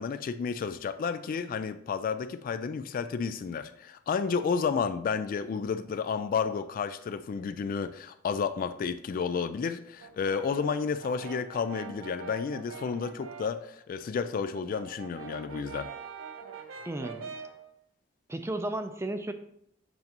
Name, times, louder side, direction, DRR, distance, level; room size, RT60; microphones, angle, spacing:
voice 1, 0.0-15.9, left 6 dB, 45° left, 0.3 m, -31 dB
Brass instrument, 10.0-13.6 14.0-17.6, right 6 dB, 80° right, 0.7 m, -44 dB
voice 2, 16.8-17.3 18.3-19.3, right 1 dB, 15° right, 0.5 m, -33 dB
7.9 x 5.2 x 2.9 m
head